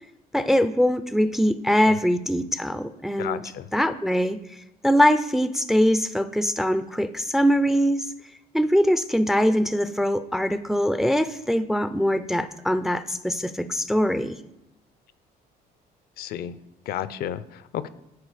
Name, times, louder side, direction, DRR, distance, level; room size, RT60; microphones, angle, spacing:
voice 1, 0.3-8.1 8.5-14.4, equal, ahead, 11 dB, 0.3 m, -22 dB
voice 2, 3.2-3.7 16.2-16.6 16.9-17.9, left 10 dB, 65° left, 15 dB, 0.5 m, -32 dB
9.4 x 4.4 x 4.9 m, 0.90 s
cardioid pair, 110°, 17 cm